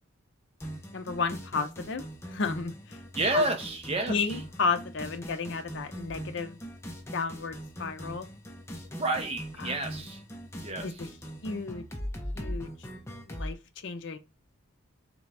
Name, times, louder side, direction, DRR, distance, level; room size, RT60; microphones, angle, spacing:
sound 1, 0.6-13.5, equal, 15° left, 0.6 m, -41 dB
voice 1, 0.9-2.0 2.3-3.0 3.3-3.4 4.1-6.6 7.1-8.3 9.6-9.8 10.8-11.1 11.4-11.8 12.3-12.7 13.3-14.2, left 4 dB, 55° left, 0.5 m, -32 dB
voice 2, 3.1-4.4 8.9-10.2 10.6-11.0, right 2 dB, 30° right, 0.6 m, -30 dB
3.8 x 3.4 x 3.3 m
head